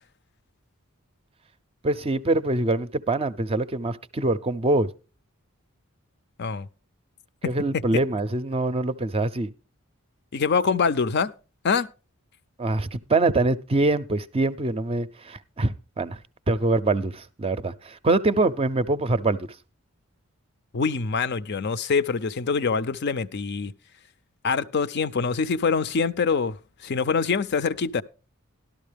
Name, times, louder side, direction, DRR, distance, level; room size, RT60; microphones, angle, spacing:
voice 1, 1.8-4.9 7.5-9.5 12.6-16.2 16.5-19.5, right 2 dB, 25° right, 0.5 m, -24 dB
voice 2, 10.3-11.3 11.6-11.9 20.7-23.7 24.4-26.6 26.8-28.0, left 5 dB, 50° left, 0.5 m, -24 dB
13.0 x 12.0 x 3.4 m
head